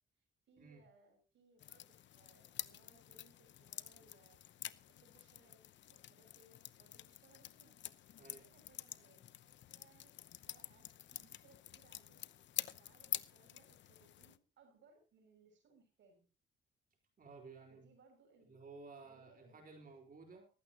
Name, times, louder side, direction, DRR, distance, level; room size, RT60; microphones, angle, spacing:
voice 1, 0.5-4.4 5.0-5.6 5.9-7.8 8.3-10.2 10.5-12.3 12.7-16.3 17.7-18.5 19.0-19.9 20.3-20.5, right 3 dB, 70° right, 3 dB, 6.8 m, -68 dB
sound 1, 1.6-14.4, left 12 dB, 65° left, 0.9 m, -48 dB
voice 2, 17.2-17.9 18.5-20.4, right 4 dB, 45° right, 2 dB, 3.8 m, -55 dB
18.5 x 15.5 x 2.9 m, 0.34 s
cardioid pair, 90°, 20 cm